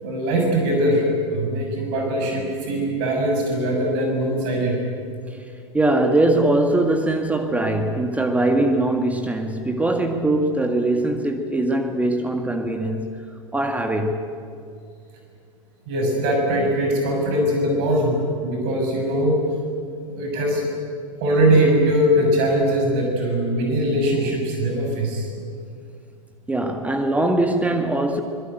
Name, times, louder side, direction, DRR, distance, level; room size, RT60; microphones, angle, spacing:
voice 1, 0.0-4.8 15.9-19.4 20.2-20.7 21.2-25.3, equal, 50° right, 1 dB, 6.6 m, -21 dB
voice 2, 5.7-13.2 13.5-14.3 26.5-28.2, right 2 dB, 10° right, 5 dB, 1.9 m, -21 dB
25.0 x 22.0 x 9.2 m, 2.3 s
figure-of-eight pair, 95°, 17 cm